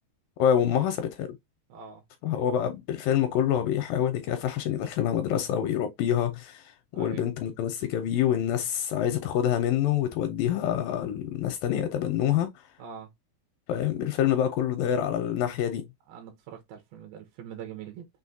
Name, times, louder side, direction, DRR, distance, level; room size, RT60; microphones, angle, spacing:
voice 1, 0.4-1.3 2.2-6.6 6.9-12.5 13.7-15.9, left 10 dB, 80° left, 2.1 m, -26 dB
voice 2, 1.7-2.0 6.9-7.2 12.8-13.1 16.1-18.1, right 8 dB, 80° right, 2.6 m, -43 dB
6.3 x 2.5 x 2.6 m
omnidirectional pair, 4.5 m